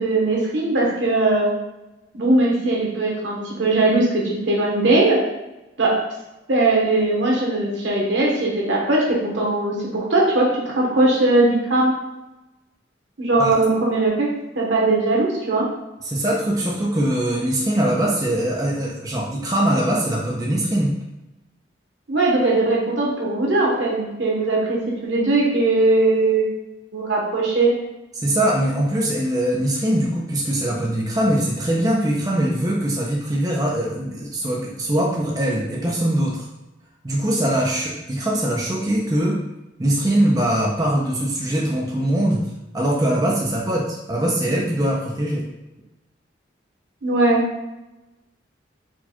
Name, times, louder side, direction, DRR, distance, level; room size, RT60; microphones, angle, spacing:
voice 1, 0.0-1.5 2.1-5.2 5.8-5.9 6.5-12.0 13.2-14.3 14.5-15.6 22.1-26.5 26.9-27.7 47.0-47.5, right 2 dB, 80° right, -3 dB, 1.3 m, -19 dB
voice 2, 16.0-21.0 28.2-36.5 37.0-39.4 39.8-45.5, right 1 dB, 20° right, -3 dB, 0.6 m, -22 dB
4.5 x 2.4 x 4.3 m, 0.98 s
head